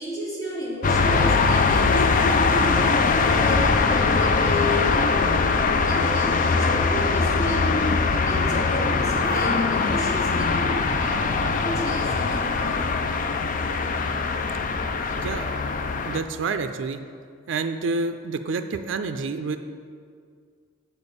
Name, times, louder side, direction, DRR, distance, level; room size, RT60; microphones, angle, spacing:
voice 1, 0.0-2.1 2.5-7.8 8.2-12.9, equal, 20° left, -4 dB, 1.3 m, -33 dB
sound 1, 0.8-16.2, left 4 dB, 45° left, 0.4 m, -22 dB
voice 2, 15.2-15.5 16.0-17.0 17.5-19.6, right 4 dB, 75° right, 8 dB, 0.4 m, -28 dB
7.1 x 4.2 x 6.7 m, 2.1 s
head